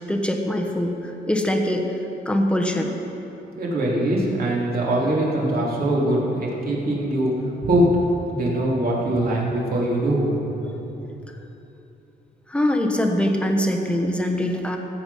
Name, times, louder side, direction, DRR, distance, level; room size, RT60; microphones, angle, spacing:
voice 1, 0.1-1.8 2.2-2.9 9.2-9.3 10.7-10.8 12.5-14.8, left 1 dB, 5° left, 2 dB, 1.2 m, -23 dB
voice 2, 3.6-7.3 7.6-7.9 8.3-10.4, right 1 dB, 55° right, -4 dB, 2.9 m, -22 dB
15.0 x 8.1 x 5.5 m, 3.0 s
cardioid pair, 110°, 19 cm